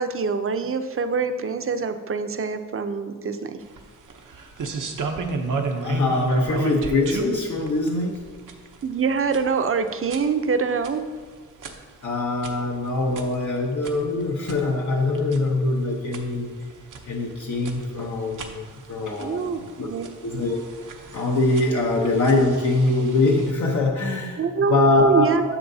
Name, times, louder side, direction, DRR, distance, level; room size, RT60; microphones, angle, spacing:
voice 1, 0.0-3.6 8.8-11.0 19.2-20.1 24.4-25.4, right 5 dB, 45° right, 8 dB, 0.6 m, -24 dB
sound 1, 3.6-23.5, right 4 dB, 85° right, 0.8 m, -36 dB
voice 2, 5.8-8.2 12.0-16.5 17.0-19.9 20.2-24.4 24.7-25.3, left 2 dB, 70° left, -1 dB, 0.9 m, -23 dB
9.8 x 7.7 x 2.7 m, 1.5 s
wide cardioid pair, 90°, 30 cm